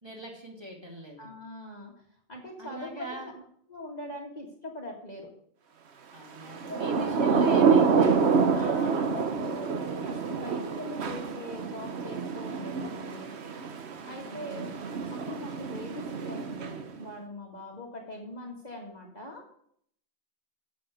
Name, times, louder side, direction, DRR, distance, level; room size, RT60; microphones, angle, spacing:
voice 1, 0.0-1.3 2.6-3.3 6.1-8.3 14.2-14.7, right 1 dB, 20° right, -1 dB, 2.6 m, -42 dB
voice 2, 1.2-1.9 2.3-3.4 3.7-5.3 6.7-6.9 8.5-13.3 14.0-14.7 15.1-19.6, left 1 dB, 30° left, -1 dB, 1.9 m, -42 dB
Thunder / Rain, 6.5-17.0, right 5 dB, 55° right, 1.1 m, -27 dB
9.3 x 7.8 x 6.4 m, 0.66 s
omnidirectional pair, 1.4 m